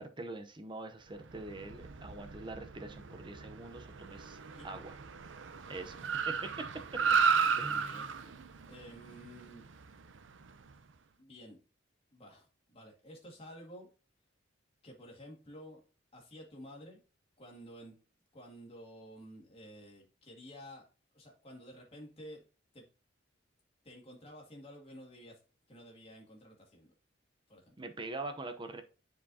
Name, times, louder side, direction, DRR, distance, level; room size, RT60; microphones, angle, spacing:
voice 1, 0.0-4.4 4.6-5.0 5.7-6.0 6.3-6.7 7.5-8.2 27.8-28.8, right 2 dB, 25° right, 7 dB, 0.7 m, -44 dB
Car, 1.2-10.7, right 6 dB, 85° right, 0.6 m, -35 dB
voice 2, 7.7-8.1 8.7-9.6 11.2-11.6 12.1-13.9 14.8-15.8 16.1-17.0 17.4-18.0 18.3-20.8 21.1-22.4 22.7-22.9 23.8-25.4 25.7-26.9 27.5-27.8, equal, 30° left, 0 dB, 2.2 m, -51 dB
9.9 x 4.8 x 2.7 m, 0.34 s
head